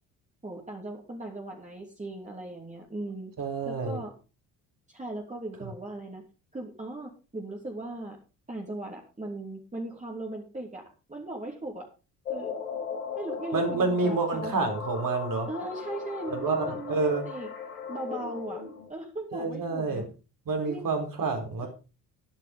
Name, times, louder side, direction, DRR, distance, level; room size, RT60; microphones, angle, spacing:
voice 1, 0.4-3.3 3.7-4.1 4.9-6.2 6.5-8.2 8.5-11.9 12.3-12.5 13.1-14.5 15.5-17.5 17.9-18.6 18.9-20.0 20.6-20.9, right 2 dB, 15° right, -1 dB, 3.0 m, -38 dB
voice 2, 3.4-4.0 5.6-5.7 13.5-15.5 16.3-17.2 19.3-20.1 20.5-21.7, right 3 dB, 45° right, 4 dB, 4.1 m, -28 dB
sound 1, 12.3-18.9, left 6 dB, 85° left, 2.2 m, -37 dB
12.5 x 10.5 x 3.8 m, 0.32 s
figure-of-eight pair, 50°, 45 cm